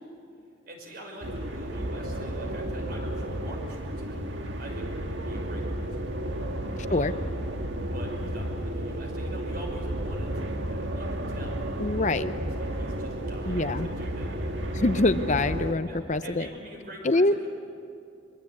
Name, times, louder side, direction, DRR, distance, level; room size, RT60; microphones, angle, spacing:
voice 1, 0.6-6.0 6.9-7.2 7.8-12.2 12.6-14.4 15.8-17.5, right 1 dB, 50° right, 1 dB, 5.9 m, -45 dB
sound 1, 1.2-15.7, right 1 dB, 75° right, 1.8 m, -32 dB
voice 2, 11.8-12.3 13.5-13.9 14.7-16.5 17.0-17.3, left 2 dB, 40° left, 11 dB, 0.7 m, -24 dB
24.5 x 23.5 x 8.5 m, 2.5 s
head